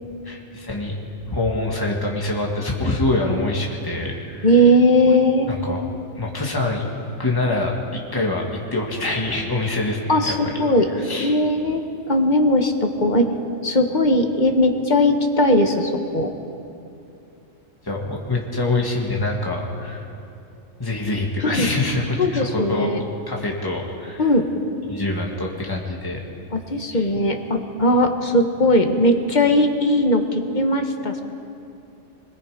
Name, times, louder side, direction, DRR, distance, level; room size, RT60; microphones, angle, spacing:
voice 1, 0.2-0.9 1.3-4.5 5.5-5.8 6.1-6.9 7.2-8.5 8.7-10.3 10.9-11.4 17.8-20.1 20.8-22.9 23.3-24.3 24.9-26.2 26.9-27.1, left 2 dB, 15° left, -1 dB, 2.2 m, -25 dB
voice 2, 4.4-5.5 10.1-10.9 11.2-13.3 13.6-16.3 21.5-21.7 22.2-23.0 24.2-24.5 26.5-31.2, left 1 dB, 35° left, 4 dB, 1.5 m, -19 dB
24.5 x 22.0 x 5.2 m, 2.6 s
omnidirectional pair, 1.4 m